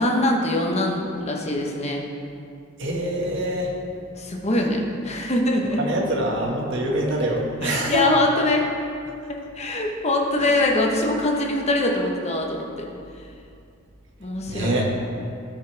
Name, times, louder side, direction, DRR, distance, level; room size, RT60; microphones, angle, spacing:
voice 1, 0.0-2.0 4.2-5.8 7.6-8.7 9.3-12.9 14.2-14.8, left 1 dB, 35° left, 0 dB, 1.2 m, -23 dB
voice 2, 2.8-3.8 5.8-8.1 10.4-10.6 14.5-14.9, right 1 dB, 65° right, -1 dB, 1.7 m, -25 dB
17.0 x 6.4 x 3.5 m, 2.5 s
head